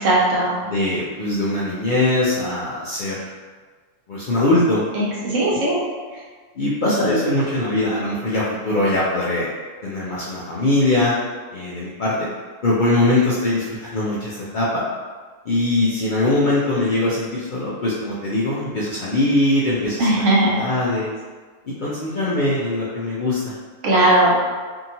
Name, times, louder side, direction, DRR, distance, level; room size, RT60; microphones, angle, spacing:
voice 1, 0.0-0.6 4.9-5.8 20.0-20.5 23.8-24.3, right 1 dB, 80° right, -5 dB, 1.2 m, -18 dB
voice 2, 0.6-3.3 4.1-4.8 6.6-9.5 9.8-11.1 11.5-12.3 12.6-14.9 15.5-20.1 20.5-21.1 21.6-23.5, left 2 dB, 60° left, -7 dB, 0.5 m, -21 dB
2.8 x 2.8 x 2.6 m, 1.4 s
omnidirectional pair, 1.3 m